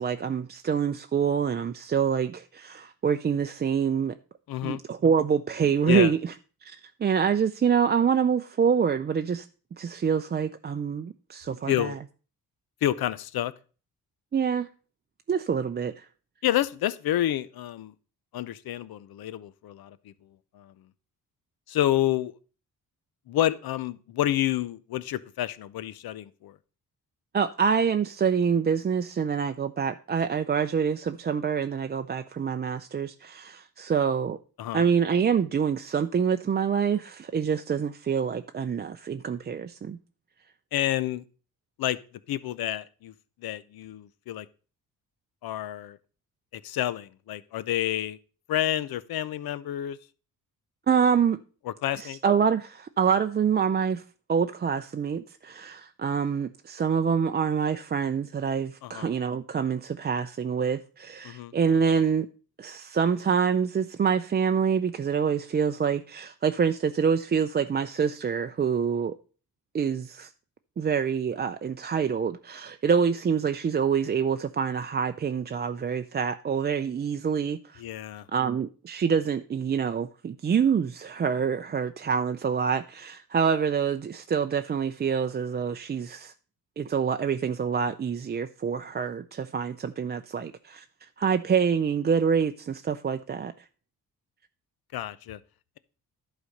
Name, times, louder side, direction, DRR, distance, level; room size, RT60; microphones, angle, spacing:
voice 1, 0.0-4.1 4.6-6.2 6.6-9.5 9.8-11.9 14.3-14.7 15.3-16.1 27.3-34.4 34.7-40.0 50.9-51.4 51.9-54.0 54.3-62.3 62.6-69.2 69.7-70.3 70.8-77.8 78.3-86.3 86.8-90.8 91.2-93.5, right 6 dB, 30° right, 0.4 m, -26 dB
voice 2, 4.5-4.8 5.9-6.1 11.5-12.0 12.8-13.5 16.4-17.9 18.3-20.1 20.5-20.7 21.7-22.3 23.3-26.6 34.6-34.8 40.7-41.2 41.8-42.0 42.3-43.1 43.4-44.5 45.4-46.0 46.5-48.2 48.5-50.0 51.6-52.2 58.8-59.1 61.2-61.5 77.8-78.3 94.9-95.4, left 13 dB, 80° left, 0.7 m, -29 dB
11.0 x 4.1 x 6.5 m
cardioid pair, 100°, 36 cm